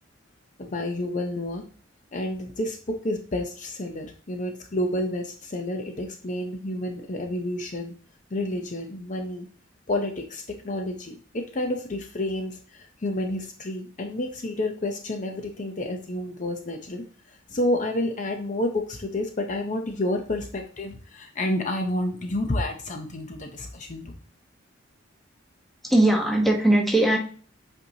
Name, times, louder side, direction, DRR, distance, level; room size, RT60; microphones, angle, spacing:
voice 1, 0.6-1.6 2.1-8.0 8.3-9.5 9.9-24.1, left 1 dB, 40° left, 5 dB, 0.7 m, -30 dB
voice 2, 25.8-27.2, right 1 dB, ahead, 0 dB, 1.1 m, -19 dB
8.0 x 4.4 x 2.8 m, 0.41 s
head